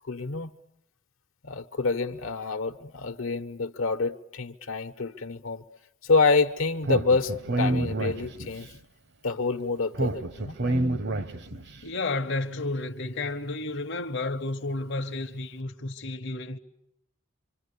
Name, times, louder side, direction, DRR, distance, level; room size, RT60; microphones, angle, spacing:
voice 1, 0.1-0.5 1.4-5.6 6.0-8.7 9.2-10.6, left 4 dB, 75° left, 1.1 m, -27 dB
Speech, 6.8-8.7 9.9-11.7, right 1 dB, 55° right, 1.1 m, -28 dB
voice 2, 11.8-16.6, left 2 dB, 55° left, 1.0 m, -31 dB
26.0 x 25.5 x 8.4 m
head